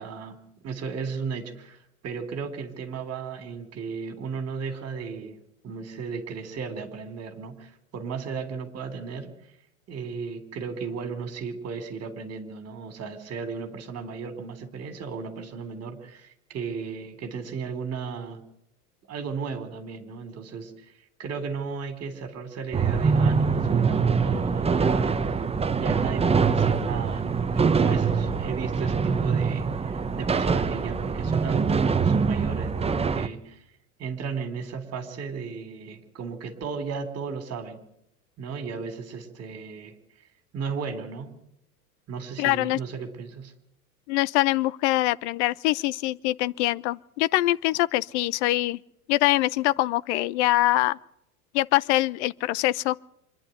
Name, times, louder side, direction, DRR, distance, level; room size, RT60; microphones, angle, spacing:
voice 1, 0.0-1.8 2.0-9.3 9.9-18.4 19.1-20.7 21.2-33.6 34.0-37.8 38.4-40.0 40.5-41.3 42.1-43.5, right 5 dB, 35° right, 3.8 m, -35 dB
sound 1, 22.7-33.3, right 5 dB, 15° right, 1.0 m, -24 dB
voice 2, 42.4-42.8 44.1-48.8 49.1-51.0 51.5-53.0, left 17 dB, 50° left, 0.8 m, -24 dB
26.0 x 11.0 x 9.3 m
figure-of-eight pair, 80°, 44 cm